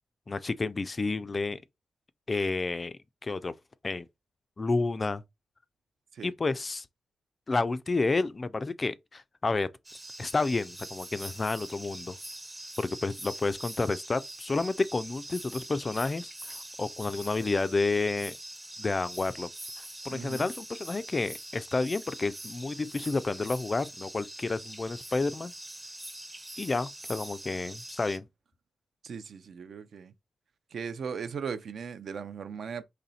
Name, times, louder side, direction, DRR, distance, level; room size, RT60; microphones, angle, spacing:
voice 1, 0.3-1.6 2.3-2.9 3.2-3.5 3.8-4.1 4.6-5.2 6.2-6.9 7.5-9.7 10.2-12.1 12.8-18.4 18.8-19.5 19.8-25.5 26.6-28.3, left 3 dB, 25° left, 0.3 m, -30 dB
sound 1, 9.8-28.2, right 1 dB, 10° right, 0.6 m, -44 dB
voice 2, 20.1-20.4 29.0-30.1 30.7-32.8, right 6 dB, 60° right, 0.5 m, -38 dB
4.2 x 3.1 x 4.1 m
wide cardioid pair, 155°, 0 cm